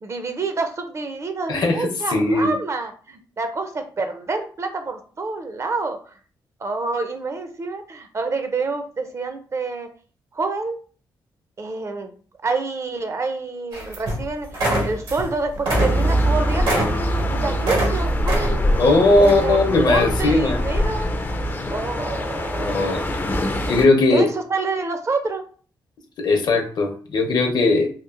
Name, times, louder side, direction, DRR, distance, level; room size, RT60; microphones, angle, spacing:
voice 1, 0.0-6.1 6.6-9.9 10.3-10.8 11.6-12.1 12.4-14.5 14.8-16.9 17.3-21.1 21.7-23.4 24.1-25.4, right 3 dB, 35° right, 6 dB, 0.4 m, -27 dB
voice 2, 1.5-2.5 18.8-20.6 22.5-23.0 23.7-24.3 26.2-27.9, left 2 dB, 60° left, 3 dB, 0.6 m, -18 dB
sound 1, 13.7-14.2 14.5-15.3 15.5-17.9 18.2-18.8 19.2-19.4, right 1 dB, 85° right, 1.4 m, -24 dB
sound 2, 15.7-23.9, equal, 25° left, 0.3 m, -23 dB
2.9 x 2.4 x 2.4 m, 0.41 s
cardioid pair, 110°, 8 cm